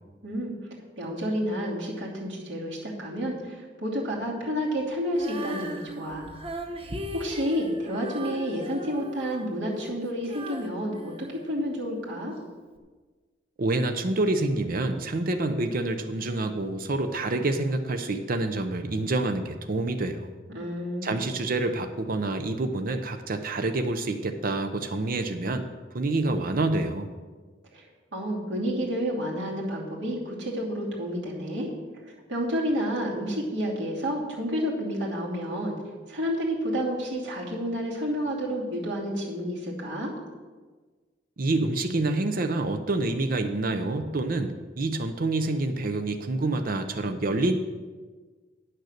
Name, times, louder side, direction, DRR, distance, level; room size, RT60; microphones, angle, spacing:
voice 1, 1.0-6.3 7.1-12.4 20.5-21.1 27.7-31.7 32.1-35.8 36.1-40.1, equal, 80° right, -4 dB, 2.7 m, -30 dB
Female singing, 5.1-12.1 12.8-12.9, right 1 dB, 30° right, 1.0 m, -39 dB
voice 2, 13.6-20.3 21.0-25.6 25.9-27.1 41.4-47.5, right 2 dB, 55° right, 7 dB, 0.7 m, -27 dB
9.3 x 6.6 x 6.6 m, 1.4 s
head